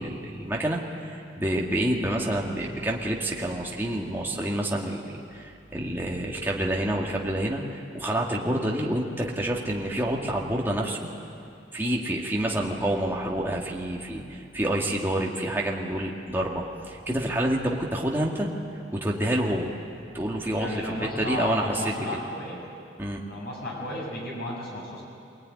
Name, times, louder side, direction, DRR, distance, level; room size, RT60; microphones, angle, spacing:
voice 1, 0.0-11.0 11.7-18.5 18.9-19.7 20.1-22.2 23.0-23.2, right 1 dB, 10° right, -2 dB, 2.1 m, -28 dB
voice 2, 20.5-22.6 23.2-25.0, left 1 dB, 55° left, -2 dB, 7.1 m, -33 dB
23.5 x 19.5 x 9.7 m, 2.5 s
head